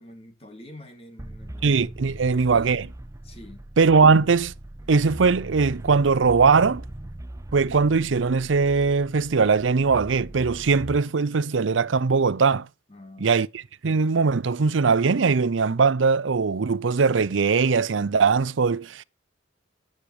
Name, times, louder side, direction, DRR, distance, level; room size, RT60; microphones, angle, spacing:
voice 1, 0.0-1.8 2.3-2.7 3.2-3.6 12.9-13.4, left 1 dB, 30° left, 2.6 m, -46 dB
sound 1, 1.2-11.0, right 1 dB, 15° right, 0.6 m, -40 dB
voice 2, 1.6-2.9 3.8-4.5 4.9-6.8 7.5-12.7 13.2-13.5 13.8-19.0, right 4 dB, 85° right, 0.6 m, -20 dB
12.0 x 8.9 x 4.8 m
head